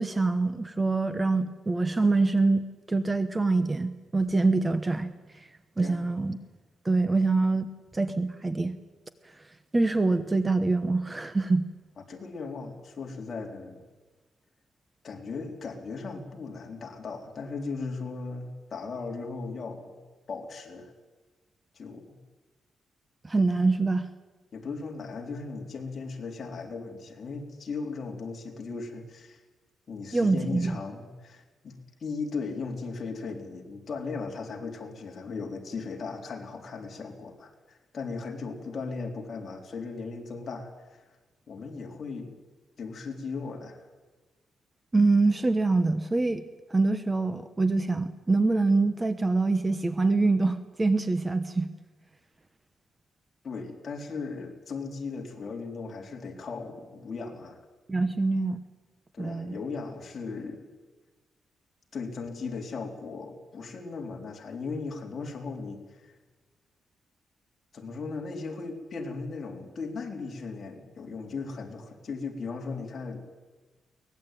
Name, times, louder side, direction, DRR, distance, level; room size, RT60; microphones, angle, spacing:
voice 1, 0.0-2.6 2.9-5.1 5.8-6.4 6.8-7.7 7.9-8.8 9.7-11.6 23.2-24.1 30.1-30.8 44.9-46.4 46.7-51.7 57.9-58.6 59.2-59.6, right 3 dB, 15° right, 11 dB, 1.0 m, -25 dB
voice 2, 12.1-13.8 15.0-20.0 20.3-20.9 21.7-22.2 24.5-29.4 29.9-41.0 41.5-42.4 42.8-43.9 53.4-57.6 59.1-60.6 61.9-66.1 67.7-73.2, left 4 dB, 40° left, 2 dB, 3.7 m, -37 dB
23.5 x 19.0 x 9.2 m, 1.3 s
cardioid pair, 150°, 0 cm